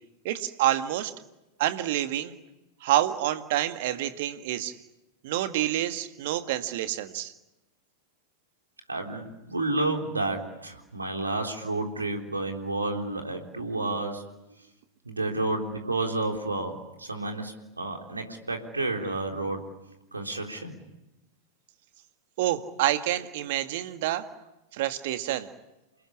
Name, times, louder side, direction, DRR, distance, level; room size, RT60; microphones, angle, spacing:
voice 1, 0.2-1.1 1.6-2.3 2.8-4.7 5.2-7.3 22.4-24.3 24.7-25.5, right 13 dB, 50° right, 9 dB, 1.9 m, -28 dB
voice 2, 8.9-14.3 15.1-19.7 20.1-20.8, right 2 dB, 80° right, 3 dB, 3.7 m, -31 dB
28.5 x 20.5 x 10.0 m, 0.96 s
figure-of-eight pair, 90°, 0 cm